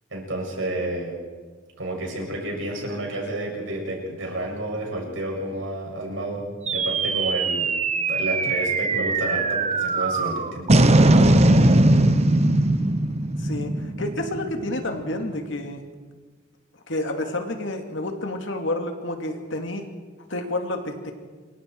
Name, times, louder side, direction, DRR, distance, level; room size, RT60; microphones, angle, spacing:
voice 1, 0.1-1.2 1.8-6.4 6.7-7.7 8.1-10.8, right 1 dB, 70° right, -1 dB, 7.4 m, -30 dB
sound 1, 6.7-15.2, right 2 dB, 35° right, 1.1 m, -20 dB
voice 2, 13.4-15.8 16.9-19.8 20.3-21.1, left 1 dB, 65° left, 4 dB, 2.6 m, -29 dB
27.5 x 24.0 x 4.7 m, 1.5 s
head